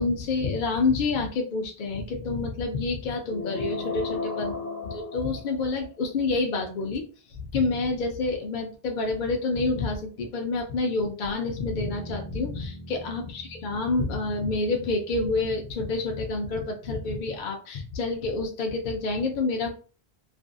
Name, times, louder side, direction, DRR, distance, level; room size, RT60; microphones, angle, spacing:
voice 1, 0.0-4.6 4.8-7.0 7.5-19.7, left 3 dB, 60° left, 3 dB, 0.6 m, -28 dB
sound 1, 3.3-5.9, left 4 dB, 75° left, 1.0 m, -34 dB
Bass guitar, 11.8-16.2, equal, ahead, 1.1 m, -44 dB
2.5 x 2.4 x 2.3 m, 0.36 s
omnidirectional pair, 1.0 m